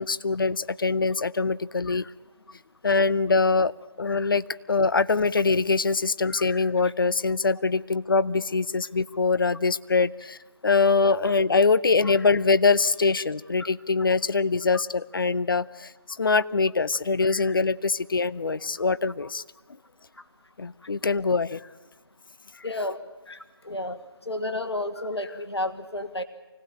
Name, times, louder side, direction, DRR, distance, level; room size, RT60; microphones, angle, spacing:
voice 1, 0.0-2.1 2.8-15.9 16.2-19.4 20.6-21.7, left 4 dB, 55° left, 16 dB, 0.8 m, -23 dB
voice 2, 22.6-23.0 23.3-23.4 23.6-24.0 24.3-26.2, left 1 dB, 80° left, 8 dB, 2.2 m, -31 dB
25.0 x 18.5 x 8.7 m, 1.2 s
figure-of-eight pair, 155°, 13 cm